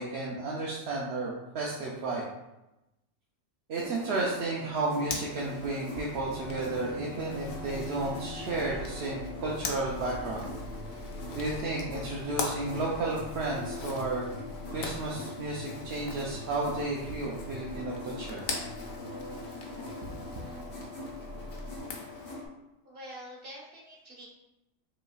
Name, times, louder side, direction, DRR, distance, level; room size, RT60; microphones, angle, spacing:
voice 1, 0.0-2.3 3.7-10.5 11.3-14.3 14.7-18.4 20.0-20.2, right 2 dB, 60° right, -4 dB, 0.8 m, -33 dB
sound 1, 3.7-22.5, left 3 dB, 45° left, 1.3 m, -43 dB
Zipper (clothing), 5.0-22.4, left 4 dB, 80° left, 1.1 m, -43 dB
sound 2, 6.2-21.8, equal, 25° right, 0.6 m, -44 dB
voice 2, 22.8-24.3, equal, 45° right, -4 dB, 1.3 m, -45 dB
5.3 x 3.0 x 2.3 m, 0.96 s
omnidirectional pair, 1.4 m